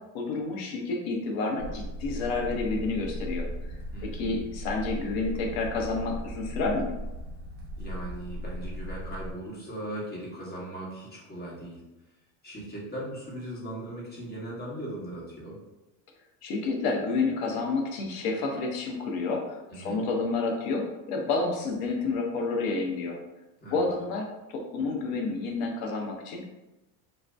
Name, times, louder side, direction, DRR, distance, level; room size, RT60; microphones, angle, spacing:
voice 1, 0.1-3.5 4.0-6.9 16.4-23.2 23.7-26.5, left 3 dB, 70° left, 1 dB, 0.8 m, -29 dB
sound 1, 1.6-9.3, equal, 35° right, 0.4 m, -37 dB
voice 2, 3.9-4.5 7.8-11.8 12.4-15.6 19.7-20.0 23.6-23.8, right 1 dB, 25° left, -5 dB, 1.1 m, -39 dB
2.6 x 2.2 x 3.3 m, 1.0 s
supercardioid pair, 120°, 42 cm